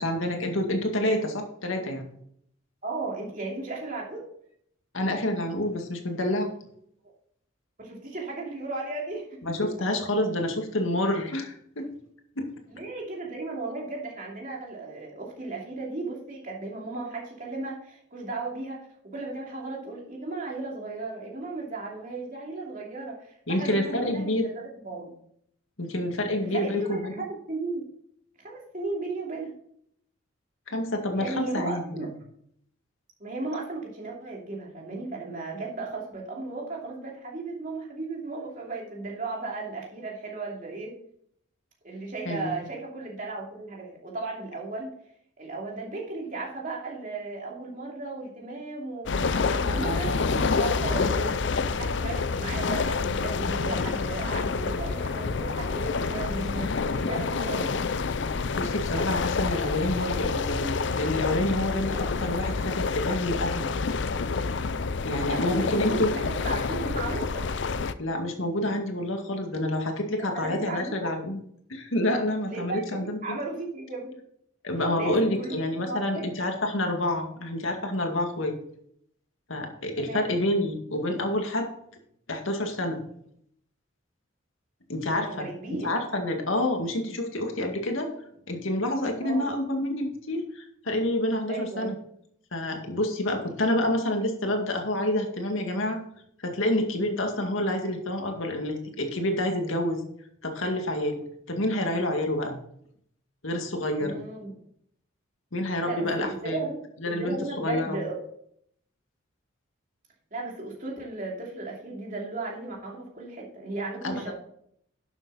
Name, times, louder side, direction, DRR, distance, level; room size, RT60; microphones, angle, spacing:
voice 1, 0.0-2.0 4.9-6.5 9.4-11.9 12.4-12.5 23.5-24.4 25.8-27.2 30.7-32.1 42.3-42.6 49.6-50.4 57.7-57.8 58.6-63.7 65.0-66.1 68.0-71.4 71.7-73.2 74.6-78.6 79.5-81.7 82.3-83.1 84.9-88.1 88.5-92.0 92.5-96.0 96.4-100.0 100.4-102.6 103.4-104.2 105.5-106.6 107.0-108.0 114.0-114.3, left 1 dB, 80° left, 3 dB, 2.0 m, -28 dB
voice 2, 2.8-4.2 7.8-9.2 12.7-18.8 19.0-25.1 26.4-27.8 28.4-29.5 31.1-32.1 33.2-40.9 41.8-44.9 45.4-51.3 51.7-57.7 65.2-67.5 70.3-71.1 72.5-74.2 75.0-75.6 75.8-76.3 80.0-80.3 85.1-85.9 89.2-89.5 91.5-92.0 104.0-104.6 105.8-106.8 107.0-108.2 110.3-114.3, right 3 dB, 40° right, -2 dB, 2.8 m, -35 dB
sound 1, 49.1-67.9, left 4 dB, 60° left, 0.5 m, -28 dB
12.0 x 7.2 x 4.1 m, 0.69 s
head